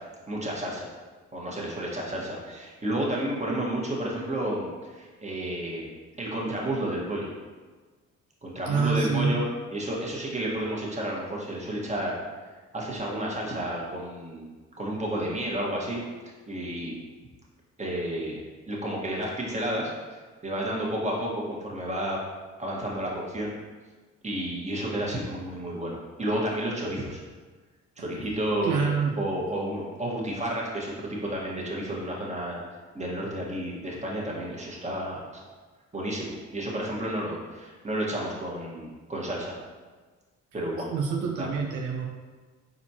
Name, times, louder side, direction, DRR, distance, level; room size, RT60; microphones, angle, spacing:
voice 1, 0.3-0.9 1.3-5.9 6.2-7.3 8.4-9.5 9.7-12.1 12.7-14.5 14.8-16.0 16.5-17.0 17.8-18.4 18.7-22.2 22.6-23.5 24.2-27.2 28.0-28.9 29.2-32.6 32.9-35.4 35.9-39.6 40.5-40.9 41.4-41.5, right 1 dB, 20° right, -3 dB, 1.4 m, -31 dB
voice 2, 8.7-9.4 28.6-29.2 40.9-42.1, right 5 dB, 75° right, 1 dB, 0.6 m, -26 dB
4.4 x 4.1 x 2.8 m, 1.4 s
supercardioid pair, 65°, 30 cm